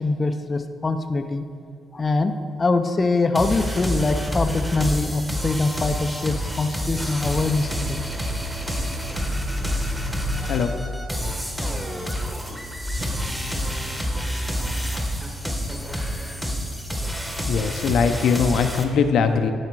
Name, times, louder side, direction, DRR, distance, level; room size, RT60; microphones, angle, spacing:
voice 1, 0.0-1.4 1.9-8.0, left 3 dB, 30° left, 7 dB, 0.4 m, -23 dB
sound 1, 3.3-18.8, equal, 5° right, 1.1 m, -28 dB
voice 2, 17.4-19.5, left 6 dB, 75° left, 7 dB, 0.6 m, -21 dB
10.5 x 4.9 x 4.6 m, 2.3 s
cardioid pair, 90°, 0 cm